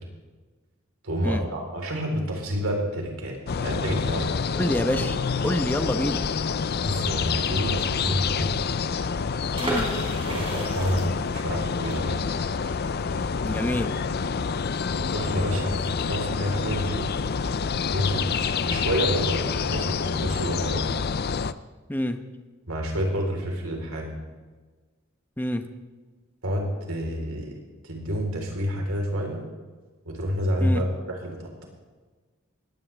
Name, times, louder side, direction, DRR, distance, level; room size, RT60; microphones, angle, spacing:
voice 1, 1.0-4.4 6.8-8.5 10.3-12.2 14.9-15.8 16.1-17.1 17.9-21.0 22.7-24.1 26.4-29.4 30.1-31.7, equal, 85° right, 1 dB, 4.0 m, -29 dB
sound 1, 3.5-21.5, left 5 dB, 50° left, 0.5 m, -27 dB
voice 2, 4.5-5.2 5.4-6.2 9.6-9.9 13.4-13.9 21.9-22.2 25.4-25.6 30.6-30.8, left 1 dB, 10° left, 7 dB, 0.9 m, -26 dB
sound 2, 9.5-15.2 15.5-15.6 15.8-16.1, right 1 dB, 25° right, 4.3 m, -35 dB
20.0 x 16.5 x 3.5 m, 1.3 s
head